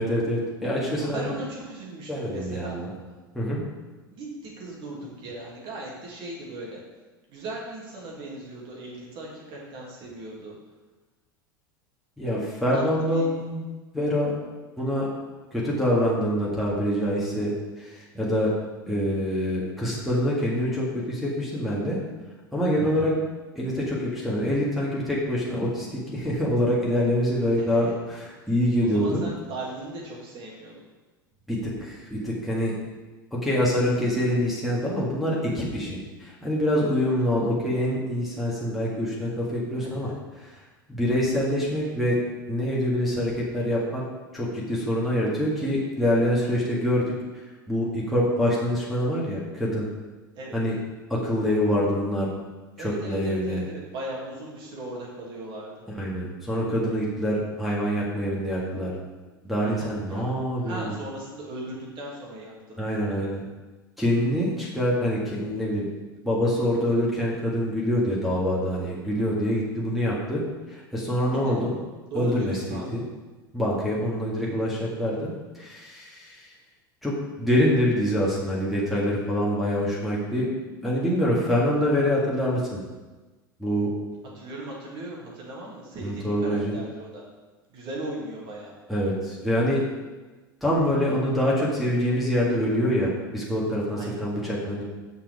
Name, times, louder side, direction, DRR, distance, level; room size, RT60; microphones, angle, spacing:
voice 1, 0.0-1.4 2.1-2.9 3.3-3.6 12.2-13.6 13.9-14.3 14.8-15.1 15.5-18.5 18.9-22.0 22.5-23.1 23.6-29.2 31.5-32.7 33.3-40.1 40.9-42.2 42.5-44.0 44.3-47.1 47.7-49.9 50.5-50.8 51.1-52.3 52.8-53.6 56.0-58.9 59.4-60.9 62.8-63.4 64.0-65.9 66.2-70.4 70.7-71.7 72.1-73.0 73.5-76.5 77.0-77.1 77.4-80.5 80.8-82.8 83.6-83.9 86.0-86.8 88.9-89.8 90.6-94.8, equal, ahead, -7 dB, 1.9 m, -25 dB
voice 2, 1.0-2.8 4.1-6.8 7.3-10.5 12.7-13.3 22.8-23.2 27.5-27.9 28.8-30.7 37.0-37.3 39.8-40.2 50.3-50.6 52.8-55.8 59.6-60.2 60.6-63.3 71.3-71.5 72.1-73.0 84.3-87.2 87.7-88.7 93.9-94.2, right 1 dB, 45° right, -3 dB, 2.6 m, -38 dB
7.3 x 5.7 x 5.0 m, 1.2 s
figure-of-eight pair, 80°, 12 cm